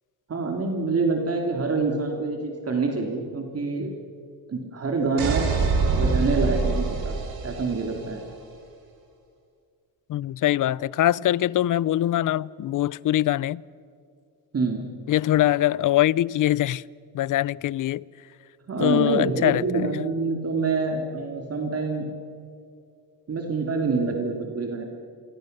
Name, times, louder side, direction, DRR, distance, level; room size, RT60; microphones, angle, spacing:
voice 1, 0.3-3.9 4.5-5.5 5.9-7.2 7.4-8.2 14.5-14.8 18.7-22.1 23.3-24.8, right 4 dB, 35° right, 2.9 m, -26 dB
sound 1, 5.2-8.0, right 4 dB, 60° right, 4.9 m, -25 dB
voice 2, 10.1-13.6 15.1-16.8 17.1-18.0 18.8-19.6, left 13 dB, 50° left, 0.5 m, -22 dB
28.5 x 24.0 x 6.7 m
cardioid pair, 110°, 40 cm